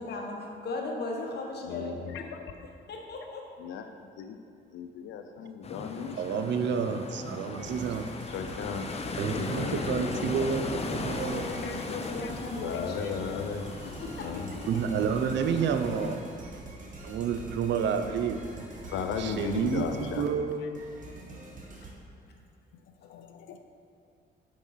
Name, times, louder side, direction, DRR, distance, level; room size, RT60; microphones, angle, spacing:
voice 1, 0.0-2.3 2.9-3.4 3.7-3.8 11.3-13.4 13.8-14.5 21.8-21.9, left 3 dB, 55° left, 0 dB, 1.1 m, -37 dB
voice 2, 1.6-2.4 3.6-4.4 4.7-6.5 8.0-9.0 9.3-10.5 10.9-12.3 12.6-13.7 14.2-14.8 18.8-20.3 20.6-20.7 21.3-21.4 23.0-23.6, left 6 dB, 75° left, 6 dB, 0.5 m, -37 dB
sound 1, 5.6-16.2, left 3 dB, 30° left, 0.6 m, -38 dB
voice 3, 6.2-8.1 9.2-11.5 14.7-16.2 17.0-18.4 19.2-20.8, right 6 dB, 65° right, 7 dB, 0.5 m, -29 dB
sound 2, 7.6-21.9, right 3 dB, 40° right, 1.2 m, -44 dB
4.7 x 4.5 x 5.5 m, 2.4 s
supercardioid pair, 70°, 20 cm